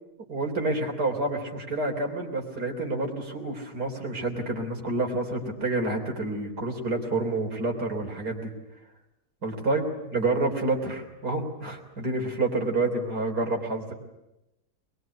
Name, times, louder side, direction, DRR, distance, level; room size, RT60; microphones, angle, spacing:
voice 1, 0.3-8.5 9.4-13.9, right 2 dB, 75° right, 2 dB, 4.1 m, -28 dB
22.0 x 22.0 x 9.5 m, 0.93 s
omnidirectional pair, 1.7 m